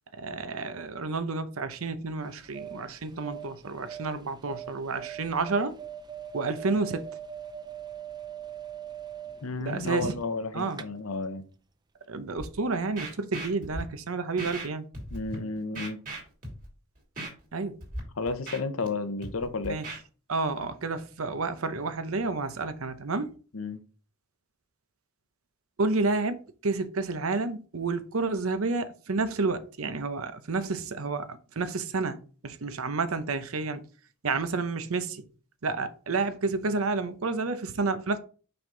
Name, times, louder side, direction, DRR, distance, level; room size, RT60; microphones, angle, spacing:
voice 1, 0.1-5.8 6.3-7.1 9.6-10.1 10.5-10.8 12.1-14.9 17.5-17.8 19.7-19.9 20.3-23.3 25.8-32.2 32.4-33.8 34.2-35.3 35.6-38.2, right 3 dB, 75° right, 0.8 m, -30 dB
sound 1, 2.2-10.4 10.7-10.8, right 9 dB, 20° right, 0.5 m, -42 dB
voice 2, 9.4-11.4 15.1-16.0 18.2-19.8 23.5-23.8, left 3 dB, 75° left, 0.8 m, -32 dB
Scratching (performance technique), 12.4-12.5 13.0-13.8 14.4-14.7 14.9-15.4 15.7-16.7 17.2-17.3 17.8-18.0 18.3-18.9 19.2-20.0, right 1 dB, 40° right, 2.9 m, -37 dB
5.9 x 5.4 x 3.8 m
head